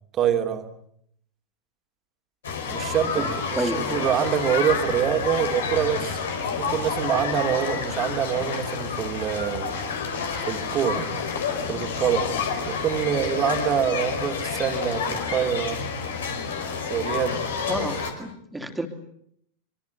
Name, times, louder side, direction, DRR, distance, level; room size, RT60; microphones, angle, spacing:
voice 1, 0.1-0.7 2.7-6.2 6.6-9.8 10.5-11.1 11.7-12.3 12.7-15.8 16.9-17.4, right 9 dB, 30° right, 6 dB, 2.8 m, -25 dB
sound 1, 2.4-18.1, left 5 dB, 65° left, 4.6 m, -29 dB
voice 2, 3.1-4.1 17.7-18.9, right 2 dB, 5° right, 5 dB, 3.3 m, -31 dB
25.5 x 24.0 x 8.2 m, 0.70 s
figure-of-eight pair, 90°, 0 cm